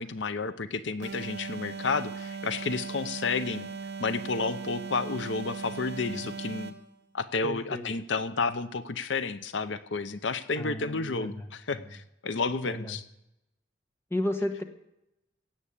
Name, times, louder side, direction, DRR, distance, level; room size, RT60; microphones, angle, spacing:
voice 1, 0.0-3.7 4.0-6.7 7.1-13.0, left 4 dB, 80° left, 13 dB, 0.7 m, -31 dB
sound 1, 1.0-6.9, right 5 dB, 60° right, 1.4 m, -38 dB
voice 2, 7.4-7.9 10.6-11.5 12.7-13.0 14.1-14.6, left 1 dB, 15° left, 7 dB, 1.3 m, -33 dB
17.0 x 7.4 x 8.4 m, 0.85 s
head